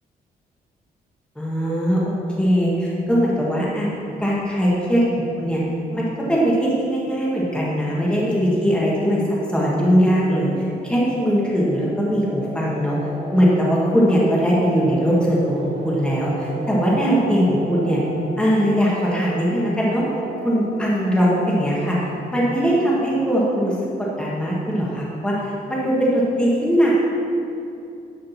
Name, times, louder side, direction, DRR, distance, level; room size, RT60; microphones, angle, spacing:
voice 1, 1.4-3.9 4.2-5.6 5.9-9.2 9.5-10.5 10.8-13.0 13.3-18.0 18.4-20.0 20.4-22.0 22.3-23.8 24.2-26.9, equal, 5° left, -6 dB, 1.7 m, -20 dB
sound 1, 10.2-24.6, right 1 dB, 35° right, 1.7 m, -35 dB
11.5 x 5.1 x 7.4 m, 2.6 s
cardioid pair, 175°, 16 cm